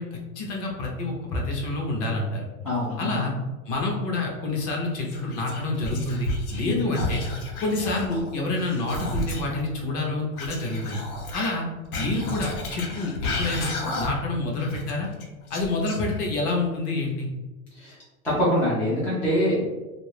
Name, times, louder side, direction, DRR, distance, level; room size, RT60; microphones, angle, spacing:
voice 1, 0.0-2.4 3.0-3.3 3.7-7.2 7.6-11.0 11.3-11.6 12.0-15.1 15.5-17.3, left 2 dB, 35° left, 0 dB, 0.7 m, -28 dB
voice 2, 2.6-3.3 6.6-6.9 17.7-18.0 18.2-19.6, left 1 dB, 5° left, -9 dB, 0.3 m, -24 dB
Whispering, 5.1-6.7 6.9-9.6 10.3-14.3 14.6-16.4, left 2 dB, 85° left, 0.8 m, -32 dB
2.5 x 2.4 x 3.2 m, 1.1 s
supercardioid pair, 130°, 43 cm